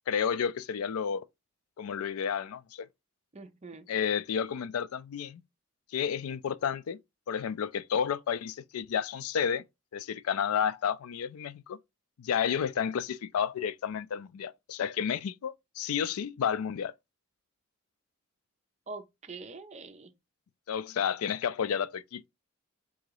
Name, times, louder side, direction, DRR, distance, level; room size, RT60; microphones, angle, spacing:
voice 1, 0.1-1.3 1.8-2.9 3.9-5.4 5.9-7.0 7.3-9.6 9.9-11.8 12.2-16.9 20.7-22.3, left 7 dB, 85° left, 0.4 m, -31 dB
voice 2, 3.3-3.9 18.9-20.1, right 3 dB, 30° right, 0.5 m, -44 dB
3.7 x 2.6 x 4.7 m
head